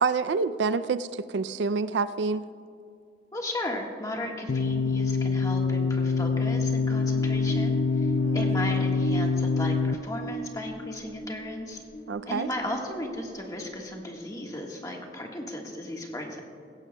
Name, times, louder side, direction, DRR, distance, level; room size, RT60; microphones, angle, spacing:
voice 1, 0.0-2.5 8.2-8.5 12.1-12.5, right 4 dB, 80° right, 13 dB, 0.4 m, -27 dB
voice 2, 3.3-11.8 12.3-16.4, left 1 dB, 20° left, 1 dB, 1.4 m, -35 dB
sound 1, 4.5-9.9, left 5 dB, 50° left, 0.4 m, -25 dB
sound 2, 6.7-14.2, right 3 dB, 80° left, 2.2 m, -37 dB
17.0 x 16.0 x 2.2 m, 2.4 s
head